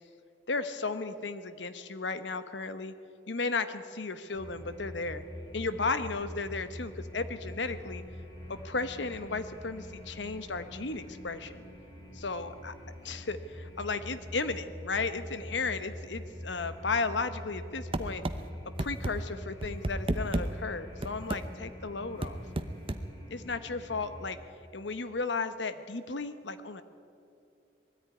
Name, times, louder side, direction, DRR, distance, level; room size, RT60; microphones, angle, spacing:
voice 1, 0.5-2.9 3.3-5.2 5.5-8.0 8.5-11.6 12.1-12.7 13.0-18.2 18.6-22.4 23.3-24.4 24.7-26.8, left 4 dB, 90° left, 11 dB, 1.1 m, -34 dB
sound 1, 4.3-24.3, left 1 dB, 25° left, 2.8 m, -45 dB
sound 2, 17.9-18.4 18.8-19.1 19.6-20.5 21.0-21.4 22.2-23.0, right 1 dB, 30° right, 0.8 m, -31 dB
20.0 x 14.0 x 9.7 m, 2.7 s
head